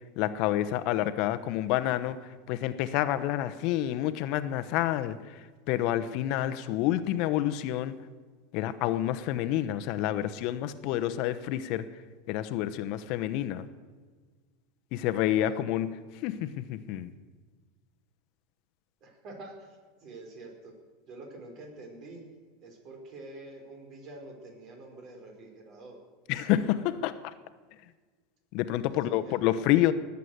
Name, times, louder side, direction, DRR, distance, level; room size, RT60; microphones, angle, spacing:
voice 1, 0.2-2.2 2.5-5.2 5.7-8.0 8.5-11.9 12.3-13.7 14.9-15.9 16.2-17.1 26.3-27.1 28.5-29.9, left 13 dB, 55° left, 0.9 m, -28 dB
voice 2, 19.0-20.7 21.1-22.2 22.6-26.0 28.9-29.4, right 2 dB, 45° right, 4.9 m, -47 dB
20.0 x 8.3 x 8.0 m
supercardioid pair, 110°, 0 cm